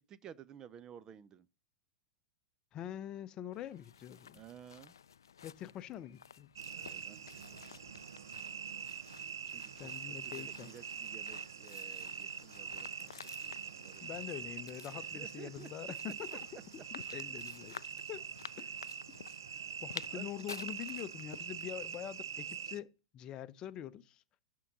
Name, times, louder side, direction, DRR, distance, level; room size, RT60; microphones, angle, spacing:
voice 1, 0.0-1.5 4.3-4.9 6.7-8.0 9.5-14.1 14.6-14.7 15.1-15.7 20.1-20.3, right 9 dB, 30° right, 0.5 m, -54 dB
voice 2, 2.7-4.4 5.4-6.5 9.8-10.7 14.0-17.8 18.1-18.3 18.6-18.7 19.8-24.2, left 11 dB, 35° left, 0.6 m, -45 dB
sound 1, 3.5-22.1, left 8 dB, 85° left, 0.3 m, -53 dB
sound 2, 6.6-22.8, right 8 dB, 85° right, 0.4 m, -44 dB
11.0 x 3.8 x 6.2 m
hypercardioid pair, 105°, 2 cm